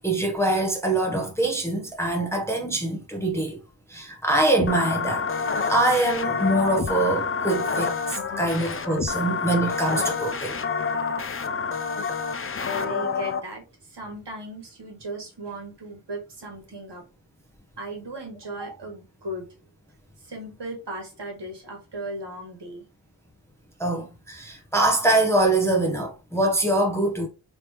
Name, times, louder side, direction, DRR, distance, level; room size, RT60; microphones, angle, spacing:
voice 1, 0.0-3.6 3.9-5.3 5.7-10.6 23.8-27.3, right 2 dB, 5° left, 0.8 m, -24 dB
sound 1, 4.6-13.4, left 5 dB, 30° left, 0.4 m, -28 dB
voice 2, 12.6-17.0 17.8-19.5 20.2-22.8, right 2 dB, 55° right, 1.5 m, -37 dB
3.3 x 2.9 x 2.9 m
cardioid pair, 40°, 50 cm